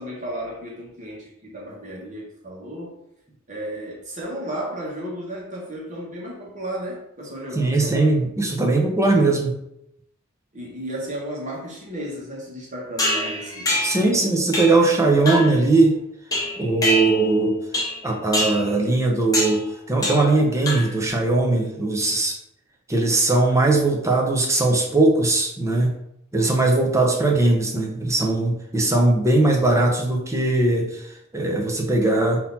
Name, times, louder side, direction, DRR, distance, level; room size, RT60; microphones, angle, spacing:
voice 1, 0.0-3.0 3.5-8.1 10.5-14.4, right 1 dB, 40° right, -3 dB, 1.4 m, -34 dB
voice 2, 7.5-9.5 13.8-15.9 16.6-17.6 18.0-22.4 22.9-25.9 26.3-30.9 31.3-32.4, right 2 dB, 15° right, 0 dB, 0.7 m, -19 dB
sound 1, 13.0-14.1 14.5-14.9 15.3-15.6 16.3-17.4 17.7-18.0 18.3-18.7 19.3-19.6 20.0-20.4 20.7-21.1, left 1 dB, 20° left, 1.1 m, -25 dB
3.9 x 2.9 x 4.0 m, 0.77 s
head